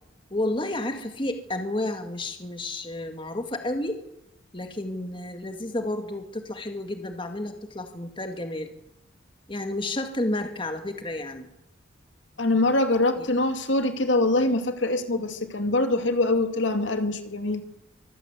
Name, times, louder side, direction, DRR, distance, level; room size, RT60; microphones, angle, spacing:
voice 1, 0.3-4.0 4.5-8.7 9.5-11.5 13.2-13.3, left 1 dB, 25° left, 6 dB, 1.9 m, -31 dB
voice 2, 12.4-17.6, left 2 dB, 70° left, 7 dB, 2.5 m, -24 dB
24.0 x 15.5 x 8.3 m, 0.84 s
head